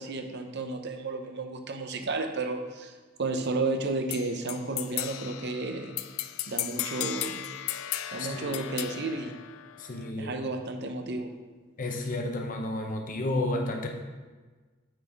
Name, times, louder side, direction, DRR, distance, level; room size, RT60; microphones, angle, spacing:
voice 1, 0.0-2.9 3.2-6.0 6.5-7.4 8.1-9.4 10.2-11.3, right 3 dB, 55° right, 5 dB, 0.7 m, -32 dB
sound 1, 4.1-10.1, left 13 dB, 70° left, 0.4 m, -36 dB
voice 2, 8.2-8.6 9.9-10.4 11.8-13.9, left 2 dB, 40° left, 3 dB, 0.8 m, -31 dB
8.9 x 4.1 x 4.6 m, 1.3 s
head